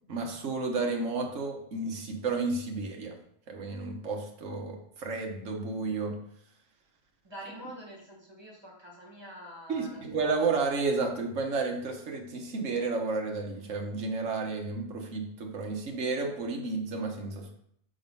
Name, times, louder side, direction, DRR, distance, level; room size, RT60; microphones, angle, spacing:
voice 1, 0.1-3.1 3.5-6.1 9.7-17.5, right 3 dB, 75° right, 1 dB, 1.5 m, -32 dB
voice 2, 7.2-10.4, equal, 20° right, -2 dB, 1.8 m, -46 dB
6.1 x 3.9 x 5.3 m, 0.68 s
omnidirectional pair, 1.3 m